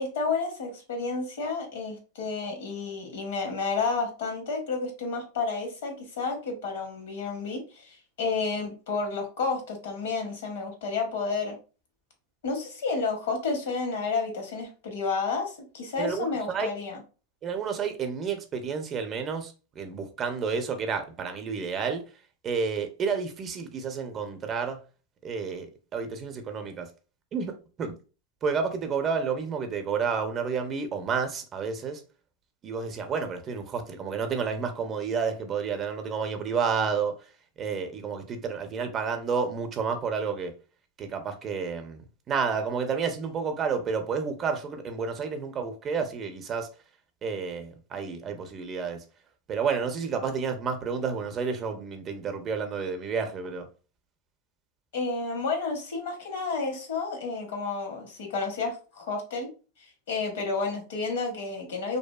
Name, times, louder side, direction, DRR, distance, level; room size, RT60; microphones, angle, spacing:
voice 1, 0.0-11.6 12.4-17.0 54.9-59.5 60.1-62.0, left 4 dB, 75° left, 0.9 m, -31 dB
voice 2, 16.0-16.7 17.4-22.0 22.4-24.8 25.2-26.9 27.3-28.0 28.4-32.0 32.6-37.2 37.6-40.5 41.0-46.7 47.2-49.0 49.5-53.7, right 5 dB, 35° right, 0.5 m, -30 dB
2.6 x 2.3 x 2.2 m
hypercardioid pair, 110°, 0 cm